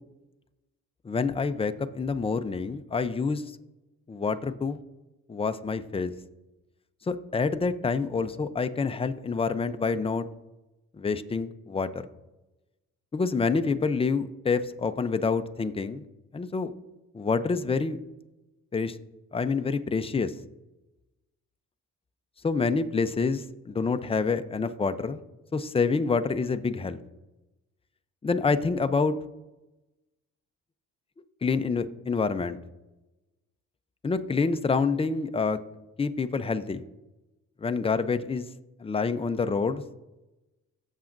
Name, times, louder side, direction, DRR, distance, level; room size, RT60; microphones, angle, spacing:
voice 1, 1.0-3.4 4.1-4.8 5.3-6.1 7.1-10.3 10.9-12.0 13.1-16.0 16.3-16.7 17.1-18.0 18.7-19.0 19.3-20.3 22.4-25.2 25.5-27.0 28.2-29.2 31.4-32.6 34.0-35.6 36.0-36.9 37.6-38.4 38.8-39.8, left 4 dB, 20° left, 9 dB, 0.6 m, -27 dB
17.5 x 7.3 x 2.6 m, 1.0 s
cardioid pair, 90°, 30 cm